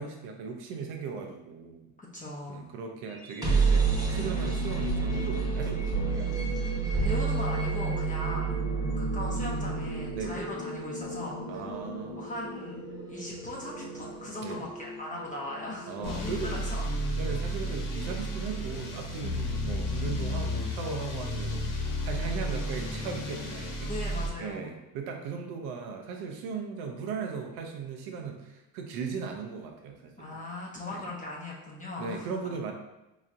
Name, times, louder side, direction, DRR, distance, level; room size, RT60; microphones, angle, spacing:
voice 1, 0.0-1.9 2.5-6.3 8.2-8.3 10.1-10.5 11.5-12.3 14.4-14.6 15.9-16.6 17.2-23.9 24.4-30.4 30.9-31.1 32.0-32.7, right 5 dB, 80° right, 3 dB, 0.7 m, -37 dB
voice 2, 2.0-2.7 7.0-8.6 9.0-11.7 12.2-12.8 13.1-16.9 23.9-24.7 30.2-32.4, left 2 dB, 20° left, -4 dB, 0.7 m, -39 dB
sound 1, 3.1-17.0, right 4 dB, 10° right, 1.0 m, -31 dB
sound 2, 16.0-24.3, left 1 dB, 60° left, 0.8 m, -32 dB
4.1 x 3.0 x 2.5 m, 0.97 s
supercardioid pair, 85°, 38 cm